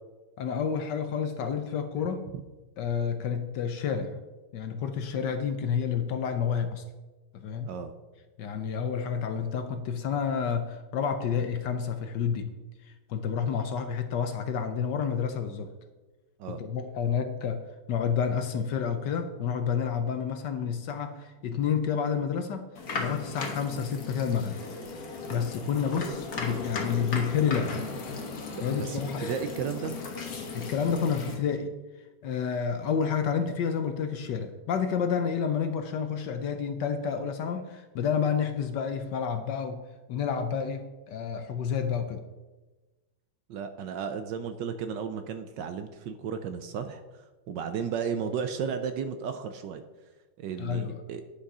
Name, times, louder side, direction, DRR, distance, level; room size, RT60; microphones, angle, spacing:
voice 1, 0.4-2.2 2.8-4.2 4.5-6.8 7.3-7.7 8.4-12.5 12.8-15.7 16.5-17.6 17.9-22.7 23.0-24.6 25.3-27.8 28.6-29.3 30.5-31.7 32.2-39.8 40.1-42.2 50.6-51.0, left 7 dB, 65° left, 8 dB, 1.2 m, -29 dB
sound 1, 22.8-31.4, left 3 dB, 50° left, 1.6 m, -36 dB
voice 2, 28.5-30.0 43.5-49.8 50.4-51.2, right 7 dB, 70° right, 9 dB, 1.2 m, -34 dB
10.0 x 6.2 x 5.4 m, 1.2 s
omnidirectional pair, 2.3 m